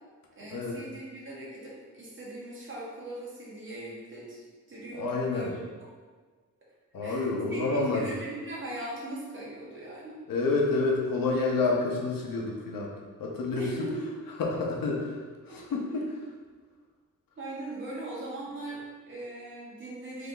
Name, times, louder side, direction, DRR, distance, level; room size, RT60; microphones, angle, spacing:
voice 1, 0.3-5.6 7.0-10.2 13.5-14.2 15.5-16.0 17.4-20.3, right 2 dB, 35° right, -6 dB, 1.2 m, -40 dB
voice 2, 4.9-5.5 6.9-8.1 10.3-12.9 13.2-13.6 14.4-15.2 15.5-16.0, left 3 dB, 80° left, -1 dB, 0.9 m, -28 dB
3.4 x 3.3 x 3.9 m, 1.4 s
wide cardioid pair, 150°, 33 cm